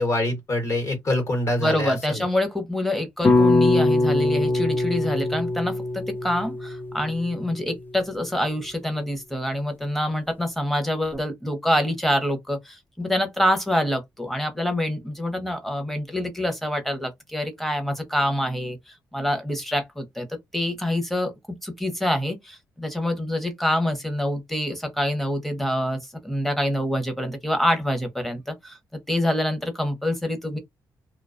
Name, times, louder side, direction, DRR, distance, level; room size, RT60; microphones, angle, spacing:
voice 1, 0.0-2.3, left 1 dB, 45° left, 1.1 m, -25 dB
voice 2, 1.6-30.6, left 1 dB, 5° left, 0.7 m, -26 dB
sound 1, 3.2-7.5, left 2 dB, 25° left, 0.3 m, -22 dB
2.3 x 2.2 x 2.4 m
cardioid pair, 145°, 7 cm